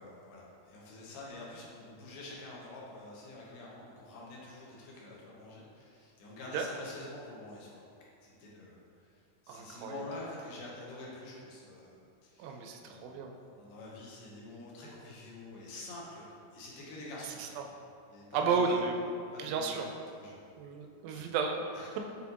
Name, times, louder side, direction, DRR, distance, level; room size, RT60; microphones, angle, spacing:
voice 1, 0.0-7.8 8.2-17.6 18.1-18.8 19.3-20.4 21.1-21.3 21.8-22.0, left 2 dB, 80° left, -5 dB, 2.9 m, -47 dB
voice 2, 9.5-10.1 12.4-13.3 17.4-17.6 18.3-19.9 20.6-21.6, right 5 dB, 80° right, 3 dB, 2.2 m, -33 dB
8.3 x 4.0 x 2.9 m, 2.4 s
omnidirectional pair, 4.2 m